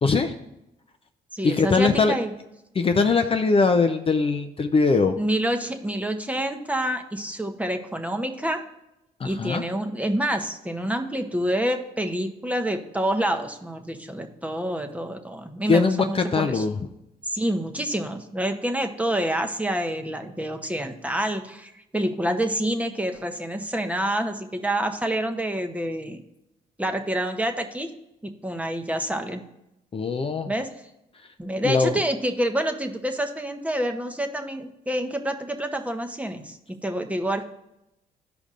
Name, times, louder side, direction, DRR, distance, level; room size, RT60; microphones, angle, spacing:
voice 1, 0.0-0.3 1.4-2.1 2.7-5.2 9.2-9.6 15.7-16.8 29.9-30.5 31.6-32.0, left 4 dB, 35° left, 6 dB, 0.5 m, -21 dB
voice 2, 1.3-2.3 5.2-8.6 9.2-16.6 17.3-26.2 26.8-27.9 28.2-29.4 30.5-30.7 31.4-37.5, right 1 dB, 10° right, 6 dB, 0.8 m, -27 dB
13.0 x 5.2 x 2.5 m, 0.87 s
cardioid pair, 80°, 17 cm